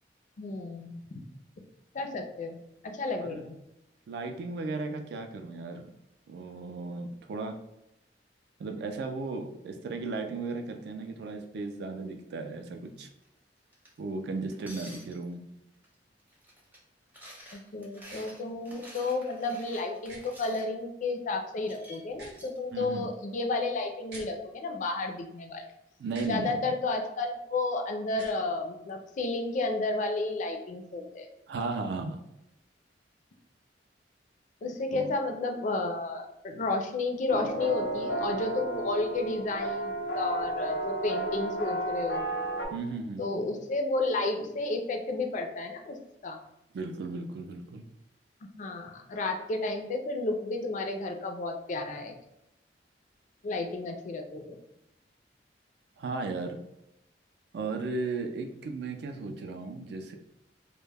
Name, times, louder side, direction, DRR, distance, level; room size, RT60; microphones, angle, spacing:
voice 1, 0.4-1.2 1.9-3.6 17.5-25.6 26.3-31.3 34.6-42.3 43.2-46.0 46.2-46.4 48.6-52.1 53.4-54.6, left 2 dB, 45° left, 4 dB, 0.3 m, -32 dB
voice 2, 4.1-5.9 6.3-7.6 8.6-13.1 14.0-15.4 22.7-23.1 26.0-26.7 31.5-32.2 34.9-35.2 42.7-43.2 46.7-47.8 56.0-56.6 57.5-60.2, right 3 dB, 65° right, 5 dB, 0.3 m, -35 dB
sound 1, 13.0-13.3 13.7-14.0 14.5-15.3 15.8-15.9 16.2-16.8 17.1-20.6 21.6-22.6, equal, 10° right, 0.5 m, -50 dB
sound 2, 18.1-18.2 20.1-20.2 22.1-22.4 24.1-24.3 26.1-26.3 28.1-28.4, right 2 dB, 85° right, 0.8 m, -47 dB
sound 3, 37.3-42.6, right 1 dB, 90° left, 0.7 m, -32 dB
2.1 x 2.0 x 3.3 m, 0.85 s
head